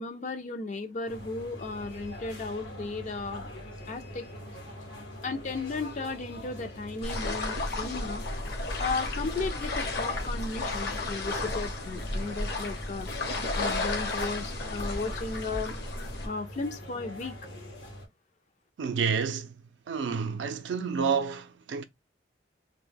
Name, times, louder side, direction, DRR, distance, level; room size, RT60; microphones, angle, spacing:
voice 1, 0.0-3.5 3.9-4.3 5.2-8.2 8.8-13.1 13.6-15.7 16.2-17.4, left 3 dB, 40° left, 0.4 m, -35 dB
sound 1, 1.1-18.1, left 1 dB, 85° left, 0.9 m, -43 dB
sound 2, 7.0-16.3, left 2 dB, 60° left, 0.7 m, -33 dB
voice 2, 18.8-19.6 19.9-21.8, right 6 dB, 75° right, 0.4 m, -29 dB
2.1 x 2.1 x 3.2 m
head